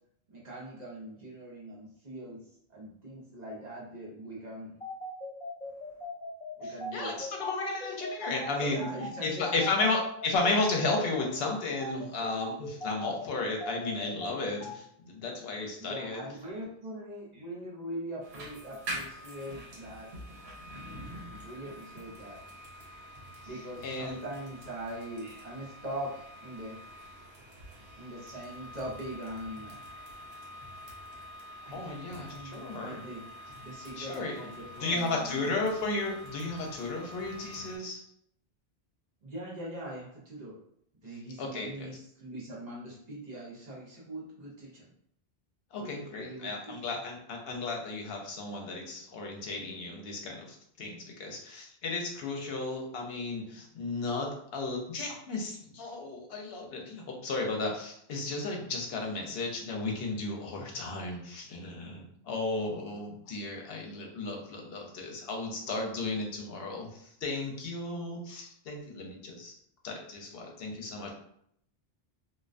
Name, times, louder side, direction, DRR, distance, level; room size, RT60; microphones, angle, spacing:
voice 1, 0.3-2.4 2.7-4.7 6.6-7.2 8.6-9.8 15.8-20.1 21.2-22.4 23.4-26.8 28.0-29.7 31.6-33.3 33.6-35.5 39.2-40.5 41.0-44.8 45.8-46.8, right 1 dB, 45° right, -5 dB, 0.8 m, -42 dB
sound 1, 4.8-14.7, left 1 dB, 35° left, 1.0 m, -39 dB
voice 2, 6.6-16.2 23.8-24.2 31.7-33.0 34.0-34.4 34.8-38.0 41.4-41.9 45.7-69.5 69.8-71.1, left 3 dB, 70° left, 1 dB, 0.8 m, -34 dB
sound 2, 18.2-37.8, equal, 80° right, 1.0 m, -46 dB
2.3 x 2.2 x 2.4 m, 0.69 s
omnidirectional pair, 1.1 m